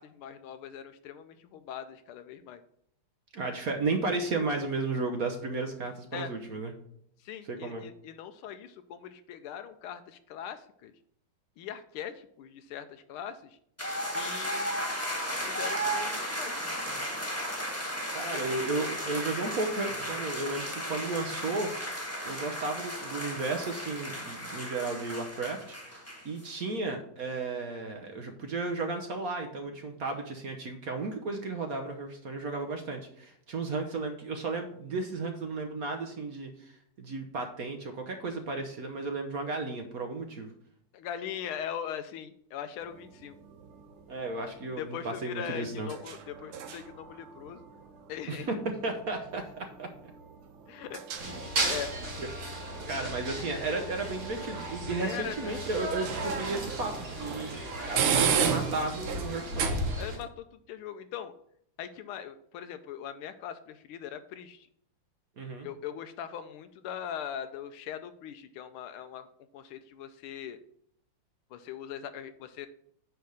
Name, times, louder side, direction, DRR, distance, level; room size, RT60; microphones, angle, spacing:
voice 1, 0.0-2.6 6.1-6.3 7.2-10.9 11.6-13.6 14.1-14.8 15.4-16.6 18.3-18.4 40.9-43.3 44.8-47.6 48.1-48.7 50.7-51.0 51.3-51.9 55.0-55.6 60.0-61.3 61.8-64.7 65.6-69.3 69.5-70.6 71.5-72.7, left 9 dB, 85° left, 9 dB, 1.5 m, -40 dB
voice 2, 3.3-6.7 7.5-7.8 18.1-21.7 22.2-40.5 44.1-45.9 48.3-49.9 52.2-52.3 52.9-57.5 57.8-59.7 65.4-65.7, right 3 dB, 55° right, 5 dB, 1.1 m, -34 dB
sound 1, 13.8-26.5, equal, 10° left, 1.5 m, -35 dB
sound 2, 42.8-60.2, right 7 dB, 90° right, 1.8 m, -36 dB
sound 3, 51.2-60.2, right 1 dB, 70° right, 3.3 m, -36 dB
9.3 x 3.5 x 6.4 m, 0.69 s
omnidirectional pair, 2.3 m